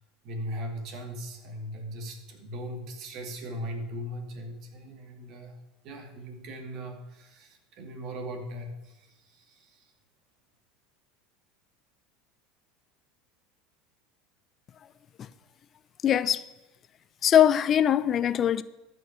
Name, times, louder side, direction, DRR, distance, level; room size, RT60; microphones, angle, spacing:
voice 1, 0.2-5.6 5.8-9.8, equal, 50° right, 2.5 m, -39 dB
voice 2, 16.0-16.4 17.2-18.6, left 10 dB, 40° left, 0.6 m, -22 dB
13.5 x 6.5 x 8.3 m
hypercardioid pair, 80°, 0 cm